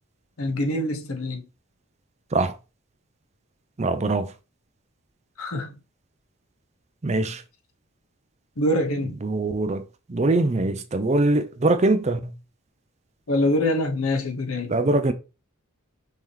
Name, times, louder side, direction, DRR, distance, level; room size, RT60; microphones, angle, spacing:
voice 1, 0.4-1.4 5.4-5.8 8.6-9.2 13.3-14.8, left 1 dB, 75° left, 1.0 m, -25 dB
voice 2, 3.8-4.3 7.0-7.4 9.2-9.8 10.1-12.2 14.7-15.1, right 2 dB, 30° right, 0.5 m, -22 dB
5.5 x 2.9 x 3.3 m
head